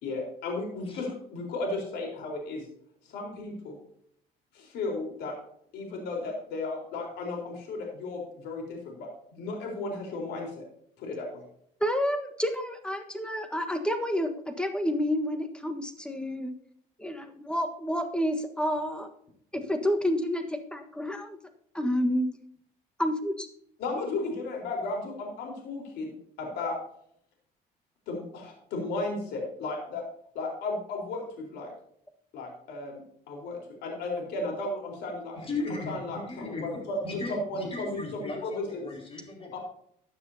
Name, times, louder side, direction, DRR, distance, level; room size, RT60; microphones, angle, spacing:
voice 1, 0.0-2.6 3.1-3.7 4.5-5.4 5.7-10.6 11.0-11.4 23.8-26.8 28.1-30.0 30.3-31.7 32.3-33.0 33.3-35.4 35.9-38.9 39.5-39.6, left 2 dB, 80° left, 1 dB, 4.3 m, -34 dB
voice 2, 11.8-16.5 17.0-19.1 19.5-21.4 21.7-22.3 23.0-23.5, equal, 5° left, 7 dB, 1.4 m, -29 dB
voice 3, 35.3-39.6, left 3 dB, 35° left, 1 dB, 4.9 m, -37 dB
15.0 x 9.8 x 2.8 m, 0.68 s
cardioid pair, 110°, 17 cm